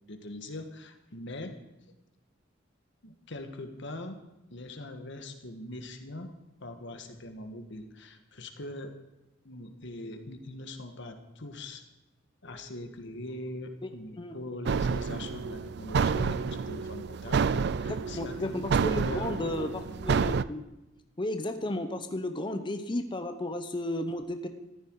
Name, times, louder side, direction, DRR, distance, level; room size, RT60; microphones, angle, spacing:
voice 1, 0.1-1.5 3.0-4.2 4.5-6.3 6.6-8.9 9.4-11.8 12.4-19.9, left 1 dB, 65° left, 6 dB, 1.7 m, -42 dB
sound 1, 14.7-20.4, right 5 dB, 55° right, 0.4 m, -29 dB
voice 2, 18.1-20.6 21.2-24.5, left 1 dB, 25° left, 7 dB, 0.9 m, -33 dB
14.5 x 14.0 x 4.8 m, 0.98 s
head